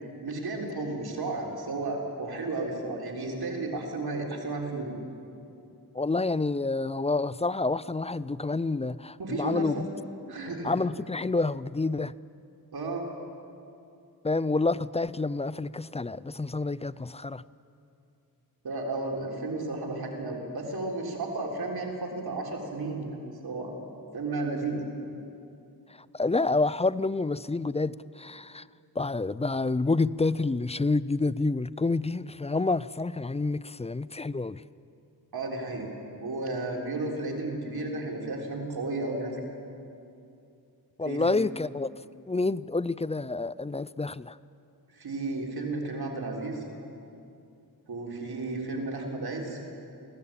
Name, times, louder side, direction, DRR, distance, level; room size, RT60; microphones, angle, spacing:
voice 1, 0.2-4.9 9.2-9.8 10.3-10.7 12.7-13.1 18.6-23.2 23.4-23.8 24.1-24.8 35.3-35.9 36.2-39.4 41.0-41.2 44.9-46.6 47.9-49.6, right 2 dB, 75° right, 3.9 m, -33 dB
voice 2, 5.9-9.9 10.6-12.1 14.2-17.4 25.9-28.7 29.0-34.6 41.0-41.9 42.3-44.4, left 3 dB, 15° left, 0.4 m, -28 dB
23.5 x 16.5 x 8.7 m
cardioid pair, 60°, 38 cm